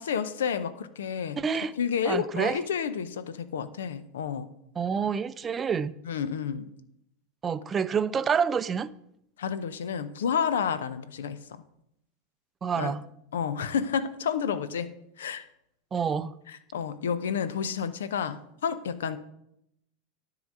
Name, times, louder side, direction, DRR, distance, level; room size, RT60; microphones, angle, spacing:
voice 1, 0.0-1.4 1.8-4.5 6.1-6.7 9.4-11.4 12.7-12.9 13.3-15.5 16.5-19.2, left 7 dB, 75° left, 0.6 m, -30 dB
voice 2, 1.4-1.7 2.0-2.6 4.8-5.9 7.4-8.9 12.6-13.0 15.9-16.3, right 6 dB, 25° right, 0.4 m, -27 dB
10.5 x 3.9 x 7.4 m
hypercardioid pair, 85°, 0 cm